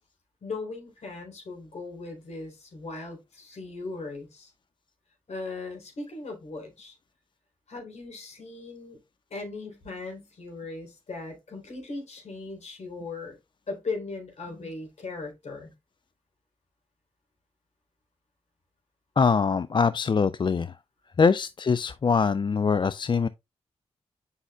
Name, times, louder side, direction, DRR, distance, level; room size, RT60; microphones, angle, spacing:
voice 1, 0.4-4.5 5.3-7.0 7.7-9.0 9.3-13.4 13.7-15.7, left 3 dB, 60° left, 3.7 m, -38 dB
voice 2, 19.2-20.7 21.2-23.3, left 5 dB, 40° left, 0.4 m, -23 dB
8.2 x 5.6 x 2.3 m
supercardioid pair, 40°, 13 cm